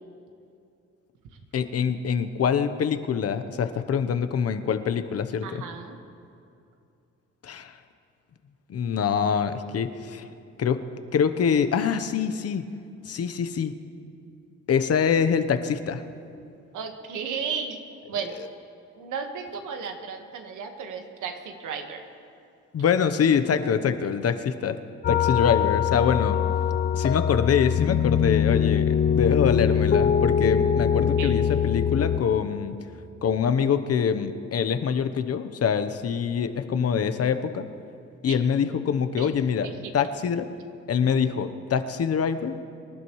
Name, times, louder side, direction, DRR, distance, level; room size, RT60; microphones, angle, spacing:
voice 1, 1.5-5.6 7.4-7.8 8.7-10.3 10.6-10.8 11.1-12.6 13.0-13.7 14.7-16.0 18.3-18.5 22.7-24.8 25.1-26.4 26.9-32.8 33.2-37.7 38.2-40.5 40.9-42.6, left 7 dB, 55° left, 10 dB, 0.9 m, -25 dB
voice 2, 5.4-6.0 16.7-17.8 18.1-18.4 19.0-22.0 31.2-31.3 39.2-39.3 39.6-39.7, right 6 dB, 80° right, 5 dB, 1.6 m, -34 dB
sound 1, 25.0-32.2, left 8 dB, 35° left, 0.6 m, -23 dB
25.5 x 11.5 x 3.2 m, 2.5 s
cardioid pair, 90°, 30 cm